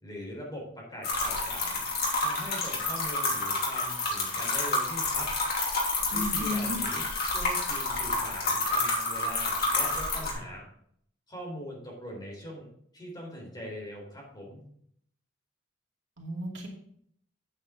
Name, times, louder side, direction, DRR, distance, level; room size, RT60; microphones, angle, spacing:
voice 1, 0.0-1.8 2.2-5.3 6.1-7.1 7.3-10.7 11.3-12.7 12.9-14.6, equal, 20° left, -2 dB, 3.9 m, -41 dB
sound 1, 1.0-10.3, left 2 dB, 50° left, 2.9 m, -29 dB
voice 2, 6.1-6.8 16.2-16.7, left 1 dB, 65° right, -1 dB, 2.3 m, -33 dB
8.8 x 8.7 x 3.8 m, 0.67 s
head